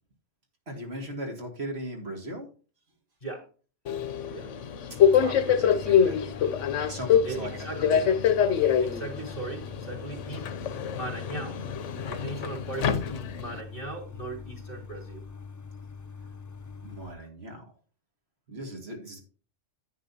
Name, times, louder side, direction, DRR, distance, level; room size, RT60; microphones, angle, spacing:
voice 1, 0.7-2.5 4.9-6.2 6.9-7.9 16.8-17.6 18.5-19.2, right 1 dB, 60° right, 2 dB, 2.4 m, -38 dB
Subway metro underground, 3.9-13.6, left 8 dB, 85° left, 1.1 m, -25 dB
sound 1, 5.0-17.2, left 5 dB, 25° left, 0.4 m, -44 dB
voice 2, 7.2-8.1 8.8-10.5 10.9-11.6 11.9-15.3, right 3 dB, 45° left, 1 dB, 3.1 m, -38 dB
10.5 x 9.2 x 2.8 m, 0.38 s
omnidirectional pair, 1.2 m